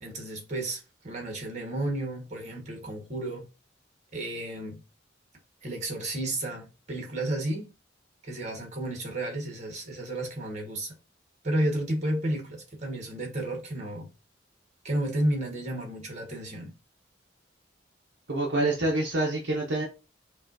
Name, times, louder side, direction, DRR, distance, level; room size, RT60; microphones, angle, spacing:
voice 1, 0.0-3.5 4.1-4.8 5.6-7.7 8.2-10.9 11.4-14.1 14.8-16.7, right 1 dB, 40° right, 1.4 m, -32 dB
voice 2, 18.3-19.8, right 2 dB, 65° right, 0.8 m, -26 dB
5.4 x 2.4 x 2.6 m
head